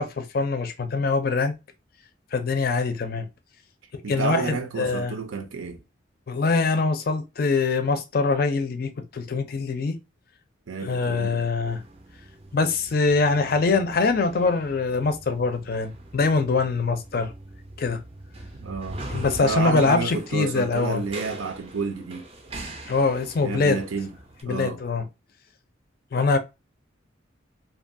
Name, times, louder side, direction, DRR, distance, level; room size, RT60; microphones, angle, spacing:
voice 1, 0.0-1.5 2.3-3.3 3.9-5.1 6.3-10.0 10.8-11.8 12.5-17.3 17.8-18.0 19.1-21.0 22.9-23.8 24.4-25.0 26.1-26.4, left 4 dB, 50° left, 0.4 m, -23 dB
voice 2, 4.0-5.8 10.7-11.4 18.6-19.0 19.4-22.3 23.4-24.1 24.5-24.8, right 4 dB, 85° right, 0.6 m, -30 dB
sound 1, 11.7-24.4, right 1 dB, 30° right, 0.4 m, -42 dB
2.7 x 2.2 x 2.6 m
head